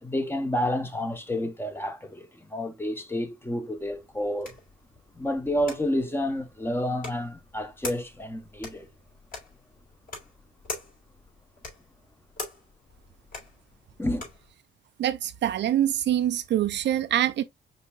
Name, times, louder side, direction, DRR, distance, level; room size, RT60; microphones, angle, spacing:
voice 1, 0.0-4.6 5.1-8.9 14.0-14.3, left 1 dB, 10° left, 1.0 m, -30 dB
sound 1, 3.8-14.5, left 2 dB, 45° left, 3.5 m, -44 dB
voice 2, 15.0-17.4, right 11 dB, 60° right, 0.5 m, -25 dB
5.3 x 4.2 x 2.3 m
cardioid pair, 90°, 20 cm